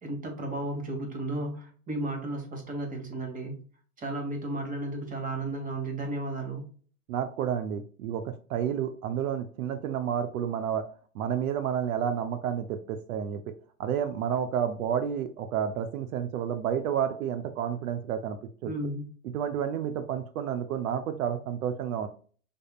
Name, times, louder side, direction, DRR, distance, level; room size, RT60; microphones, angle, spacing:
voice 1, 0.0-3.6 4.0-6.7 18.6-19.1, right 2 dB, 20° right, 3 dB, 1.4 m, -34 dB
voice 2, 7.1-10.8 11.1-13.4 13.8-18.7 19.3-22.1, right 8 dB, 70° right, 9 dB, 0.7 m, -30 dB
5.3 x 3.6 x 2.3 m, 0.43 s
hypercardioid pair, 125°, 44 cm